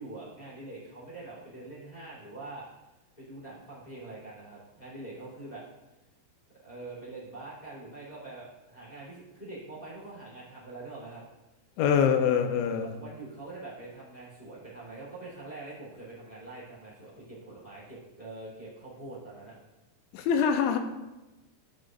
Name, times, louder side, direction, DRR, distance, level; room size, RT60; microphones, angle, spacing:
voice 1, 0.0-2.6 3.2-5.6 6.6-11.2 12.8-19.5, right 2 dB, 15° left, -8 dB, 2.0 m, -44 dB
voice 2, 11.8-12.9 20.1-20.8, left 7 dB, 85° left, 6 dB, 2.8 m, -24 dB
14.5 x 6.1 x 2.5 m, 1.1 s
omnidirectional pair, 5.4 m